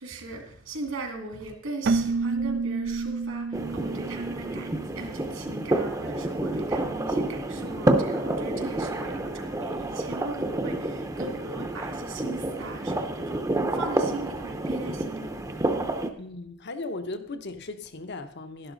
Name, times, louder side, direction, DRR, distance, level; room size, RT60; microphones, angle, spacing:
voice 1, 0.0-15.8, right 2 dB, 70° right, 2.3 m, -39 dB
Keyboard (musical), 1.8-5.5, right 4 dB, 50° right, 0.4 m, -30 dB
sound 1, 3.5-16.1, right 1 dB, 15° right, 0.7 m, -29 dB
voice 2, 16.2-18.7, left 2 dB, 55° left, 0.9 m, -37 dB
12.0 x 11.5 x 3.9 m
head